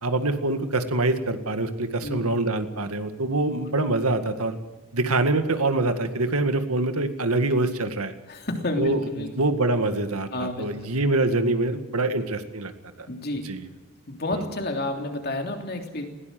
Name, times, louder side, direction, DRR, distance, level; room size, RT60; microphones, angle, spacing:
voice 1, 0.0-4.6 4.9-8.1 8.8-12.7 13.5-13.6 14.3-14.4, right 2 dB, 80° right, 8 dB, 2.0 m, -25 dB
voice 2, 2.0-2.3 8.3-9.3 10.3-10.9 13.1-13.5 14.1-16.0, left 1 dB, 45° left, 4 dB, 3.1 m, -30 dB
21.0 x 17.5 x 7.7 m, 1.1 s
head